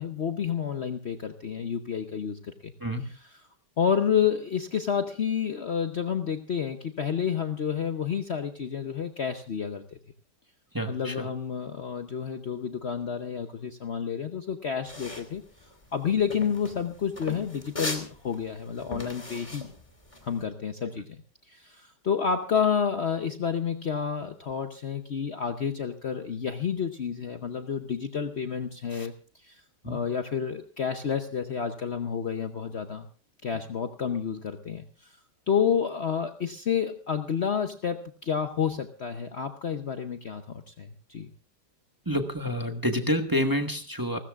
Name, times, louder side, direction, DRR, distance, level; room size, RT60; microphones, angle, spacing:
voice 1, 0.0-2.7 3.0-3.5 3.8-10.0 10.9-15.4 15.9-19.7 20.2-21.1 21.5-29.1 29.4-29.6 29.8-33.1 33.4-35.1 35.5-41.3, left 7 dB, 80° left, 7 dB, 0.5 m, -30 dB
voice 2, 10.7-11.3 28.9-29.1 29.8-30.0 42.1-44.2, equal, 15° right, 4 dB, 0.9 m, -28 dB
sound 1, 14.9-20.4, left 2 dB, 15° left, 2.2 m, -38 dB
30.0 x 14.0 x 2.4 m, 0.36 s
omnidirectional pair, 2.4 m